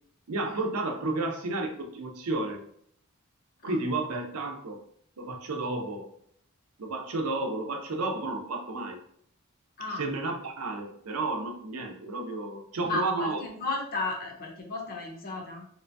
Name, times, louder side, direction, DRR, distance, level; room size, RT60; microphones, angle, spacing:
voice 1, 0.3-2.6 3.6-4.8 5.2-6.1 6.8-9.0 10.0-13.4, right 2 dB, 90° right, 3 dB, 0.6 m, -32 dB
voice 2, 12.8-15.7, left 3 dB, 45° left, 0 dB, 0.8 m, -34 dB
3.3 x 2.9 x 2.6 m, 0.66 s
head